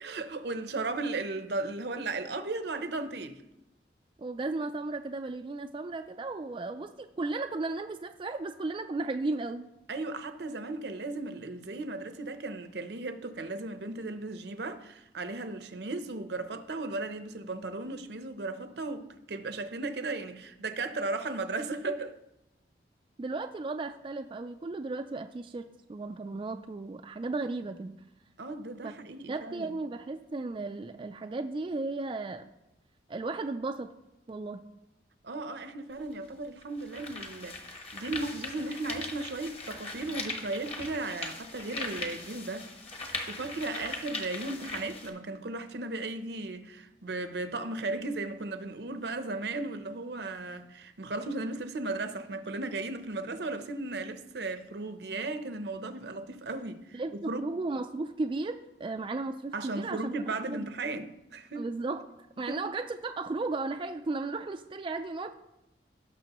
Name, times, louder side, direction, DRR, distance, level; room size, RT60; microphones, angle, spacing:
voice 1, 0.0-3.4 9.9-22.2 28.4-29.8 35.2-42.7 43.0-57.0 57.3-57.5 59.5-61.6 62.4-62.6, right 2 dB, 70° right, 0.7 m, -36 dB
voice 2, 4.2-9.7 21.9-22.0 23.2-27.9 28.8-28.9 29.3-32.5 33.1-33.9 34.3-34.6 56.9-60.1 60.4-60.7 61.6-62.1 62.4-65.3, right 3 dB, 30° right, 0.3 m, -35 dB
sound 1, 35.9-36.0 36.6-45.1, left 3 dB, 35° left, 1.2 m, -40 dB
17.5 x 6.1 x 3.0 m
head